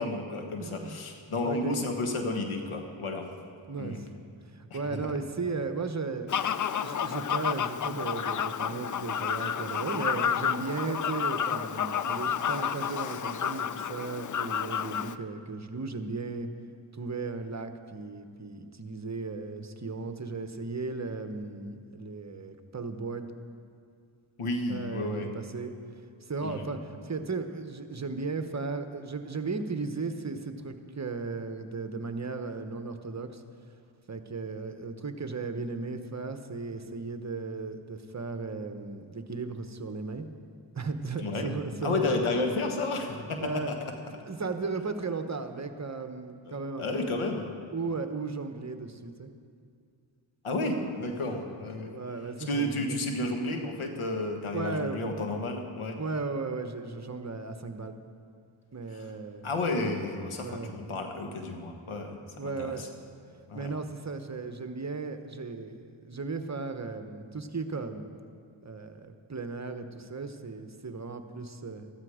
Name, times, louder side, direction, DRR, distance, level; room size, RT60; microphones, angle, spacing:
voice 1, 0.0-3.3 3.8-4.0 4.7-5.1 24.4-25.3 26.4-26.7 41.2-41.5 41.8-43.7 46.5-47.5 50.4-52.0 52.4-56.0 58.9-59.1 59.4-62.9 63.5-63.7, left 2 dB, 75° left, 4 dB, 1.6 m, -32 dB
voice 2, 0.6-1.0 1.4-1.9 3.7-4.1 4.5-6.3 6.8-16.5 16.9-23.3 24.7-25.7 26.2-33.4 34.1-40.3 40.7-42.4 43.4-43.7 44.1-47.1 47.7-49.3 51.3-51.4 51.9-53.0 54.5-55.0 56.0-57.9 58.7-59.5 60.4-60.7 62.4-62.8 63.5-68.1 68.6-71.9, right 4 dB, 35° right, 8 dB, 1.0 m, -36 dB
Fowl, 6.3-15.1, left 8 dB, 40° left, 0.5 m, -30 dB
13.5 x 13.0 x 5.0 m, 2.3 s
cardioid pair, 55°, 50 cm